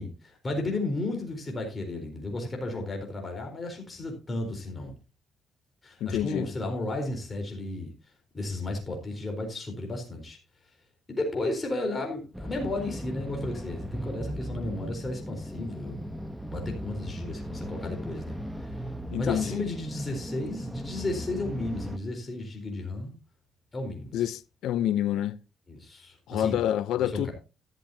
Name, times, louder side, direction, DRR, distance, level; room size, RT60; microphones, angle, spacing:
voice 1, 0.0-5.0 5.8-7.9 8.3-10.4 11.1-16.1 16.5-18.8 19.2-23.1 23.7-24.3 25.7-26.6 27.0-27.3, left 2 dB, 30° left, 4.3 m, -33 dB
voice 2, 6.0-6.5 19.1-19.6 24.1-25.4 26.3-27.3, left 11 dB, 85° left, 0.7 m, -28 dB
sound 1, 12.3-22.0, equal, 5° right, 1.1 m, -37 dB
13.5 x 12.0 x 2.8 m
cardioid pair, 90°, 0 cm